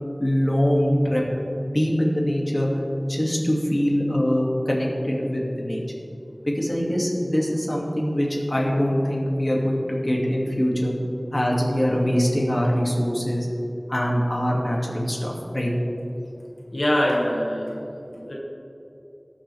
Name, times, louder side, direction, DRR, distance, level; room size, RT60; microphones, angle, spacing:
voice 1, 0.2-1.2 1.6-5.8 6.5-11.0 11.3-13.5 13.9-15.7, equal, 35° left, -3 dB, 2.4 m, -23 dB
voice 2, 16.7-18.3, equal, 80° left, -4 dB, 1.8 m, -24 dB
19.0 x 7.7 x 3.5 m, 2.9 s
wide cardioid pair, 40°, 0 cm